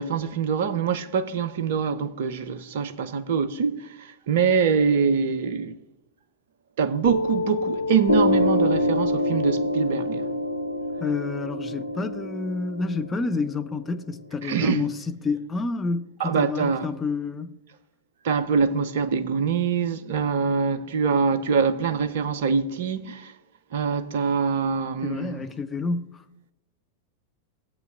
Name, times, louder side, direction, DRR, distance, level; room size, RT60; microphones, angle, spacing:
voice 1, 0.0-5.8 6.8-10.3 14.4-14.9 16.2-16.9 18.2-23.3 23.7-25.5, right 6 dB, 55° right, 0.7 m, -24 dB
Piano, 7.1-14.1, left 1 dB, 85° left, 0.6 m, -26 dB
voice 2, 11.0-17.5 25.0-26.2, left 4 dB, 15° left, 0.7 m, -29 dB
17.5 x 7.9 x 2.6 m
figure-of-eight pair, 90°, 0 cm